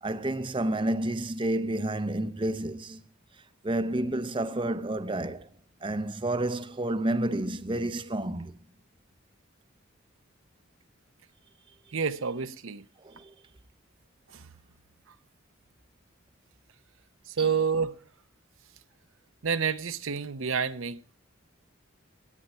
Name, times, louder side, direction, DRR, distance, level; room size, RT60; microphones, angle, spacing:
voice 1, 0.0-3.0 3.6-5.5 5.8-8.5 13.0-13.3 17.4-17.5, right 1 dB, 25° right, 0.6 m, -30 dB
voice 2, 11.9-12.8 14.3-14.5 17.3-18.0 19.4-21.2, right 6 dB, 75° right, 0.7 m, -29 dB
17.5 x 10.0 x 4.3 m
head